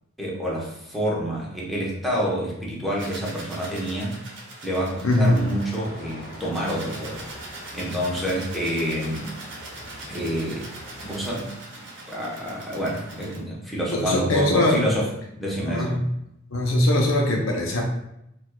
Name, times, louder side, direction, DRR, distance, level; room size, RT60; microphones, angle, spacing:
voice 1, 0.2-4.3 4.6-7.2 7.7-9.3 10.1-10.7 11.0-11.5 12.1-15.1 15.4-16.0, equal, ahead, -6 dB, 0.9 m, -28 dB
sound 1, 2.9-13.4, right 2 dB, 65° right, 0.8 m, -42 dB
voice 2, 5.0-5.4 13.9-14.9 15.6-16.1 16.5-17.8, left 1 dB, 75° left, 0 dB, 0.6 m, -21 dB
sound 2, 5.2-11.3, equal, 50° left, 1.5 m, -43 dB
4.5 x 2.3 x 2.2 m, 0.80 s
head